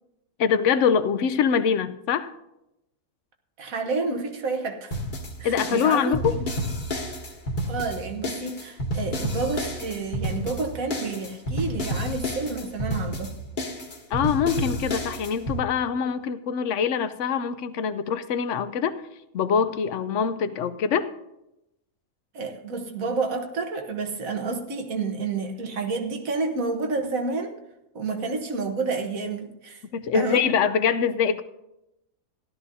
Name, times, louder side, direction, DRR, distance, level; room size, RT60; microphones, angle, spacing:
voice 1, 0.4-2.3 5.4-6.3 14.1-19.0 19.3-21.1 29.9-31.4, left 7 dB, 65° left, 12 dB, 0.8 m, -24 dB
voice 2, 3.6-5.0 5.4-6.4 7.7-13.3 22.3-27.6 27.9-29.8 30.1-30.4, right 4 dB, 70° right, 4 dB, 1.6 m, -29 dB
sound 1, 4.9-15.6, equal, 35° left, 1.2 m, -30 dB
16.5 x 12.0 x 2.7 m, 0.90 s
omnidirectional pair, 1.5 m